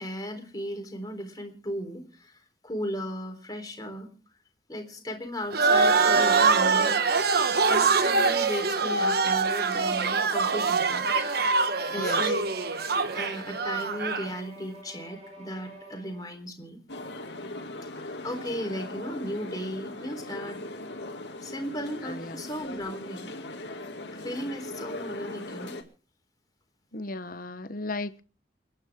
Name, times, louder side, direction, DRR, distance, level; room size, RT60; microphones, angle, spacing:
voice 1, 0.0-4.1 4.7-7.0 7.7-11.3 11.9-12.4 12.7-12.9 13.1-16.8 18.0-20.6 21.4-23.3 24.1-25.8, equal, 20° left, 3.8 m, -36 dB
sound 1, 5.5-14.3, right 4 dB, 60° right, 1.2 m, -24 dB
Bowed string instrument, 11.0-16.3, right 1 dB, 35° right, 5.8 m, -46 dB
sound 2, 16.9-25.8, left 2 dB, 80° left, 2.4 m, -39 dB
voice 2, 22.0-22.4 26.9-28.2, left 2 dB, 55° left, 1.1 m, -35 dB
29.0 x 9.7 x 3.7 m
head